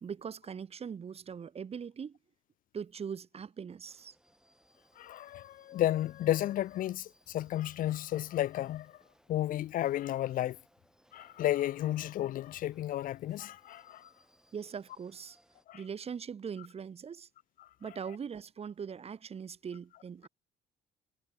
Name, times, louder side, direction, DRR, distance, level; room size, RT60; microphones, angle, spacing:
voice 1, 0.0-2.2 2.7-4.1 14.5-15.4 15.7-17.3 17.8-20.3, right 7 dB, 35° right, 2.3 m, -41 dB
sound 1, 3.8-15.7, right 1 dB, 5° right, 7.9 m, -68 dB
voice 2, 5.0-8.9 9.3-10.6 11.1-14.1 15.7-15.8, left 13 dB, 55° left, 0.5 m, -32 dB
cardioid pair, 110°, 17 cm